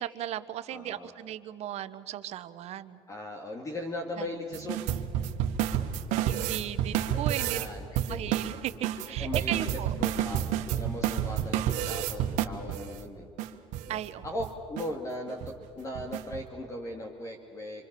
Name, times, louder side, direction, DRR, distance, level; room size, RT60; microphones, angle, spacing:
voice 1, 0.0-3.0 4.2-4.3 6.2-10.0 13.9-14.3, right 12 dB, 60° right, 12 dB, 1.1 m, -36 dB
voice 2, 0.7-1.1 3.1-4.8 7.1-8.2 9.2-9.7 10.0-10.4 10.7-13.3 13.9-17.9, left 1 dB, 25° left, 2 dB, 2.4 m, -38 dB
sound 1, 4.5-7.7 8.0-12.9 13.4-13.5 13.7-13.9 14.2-14.5 14.8-14.9 15.3-15.5 16.0-16.4, right 11 dB, 85° right, 1.5 m, -30 dB
27.0 x 24.5 x 6.9 m, 2.5 s
cardioid pair, 120°, 12 cm